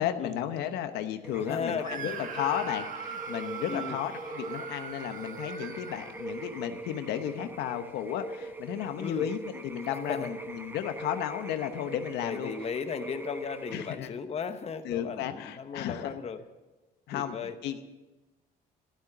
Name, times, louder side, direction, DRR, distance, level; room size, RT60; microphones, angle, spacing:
voice 1, 0.0-12.5 13.7-14.1 14.8-16.1 17.1-17.4 17.6-17.9, left 10 dB, 85° left, 8 dB, 1.0 m, -33 dB
sound 1, 1.2-14.0, right 2 dB, 10° right, 0.9 m, -42 dB
voice 2, 1.4-2.3 3.7-4.0 9.0-9.3 9.9-10.3 12.2-16.4 17.1-17.6, left 6 dB, 35° left, 8 dB, 1.0 m, -36 dB
Screaming, 1.8-6.7, right 7 dB, 50° right, 1.4 m, -41 dB
12.0 x 12.0 x 7.2 m, 1.1 s
cardioid pair, 110°, 17 cm